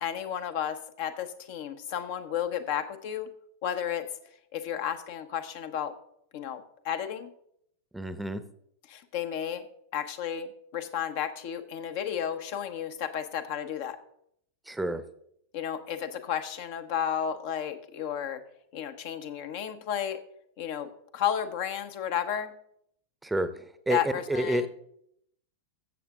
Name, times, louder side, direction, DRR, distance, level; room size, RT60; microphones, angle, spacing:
voice 1, 0.0-3.3 3.6-4.0 4.5-5.9 6.3-7.3 8.9-9.6 9.9-14.0 15.5-18.4 18.7-20.2 20.6-22.5 23.9-24.7, left 9 dB, 50° left, 9 dB, 0.9 m, -32 dB
voice 2, 7.9-8.4 14.7-15.0 23.2-24.7, right 1 dB, 5° right, 12 dB, 0.8 m, -29 dB
14.0 x 7.4 x 3.7 m, 0.71 s
figure-of-eight pair, 90°, 0 cm